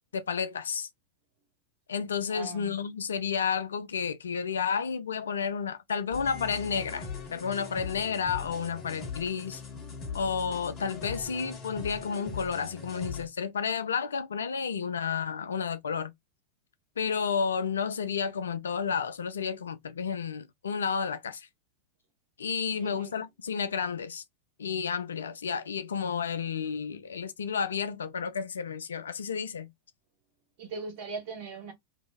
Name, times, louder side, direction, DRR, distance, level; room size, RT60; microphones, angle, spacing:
voice 1, 0.1-0.9 1.9-9.6 10.1-16.1 17.0-21.5 22.4-24.2 24.6-29.7, left 6 dB, 70° left, 0.4 m, -31 dB
voice 2, 2.3-2.7 22.7-23.1 30.6-31.7, right 4 dB, 50° right, 1.4 m, -39 dB
sound 1, 6.1-13.3, left 5 dB, 30° left, 1.2 m, -40 dB
2.8 x 2.7 x 2.3 m
figure-of-eight pair, 90°, 0 cm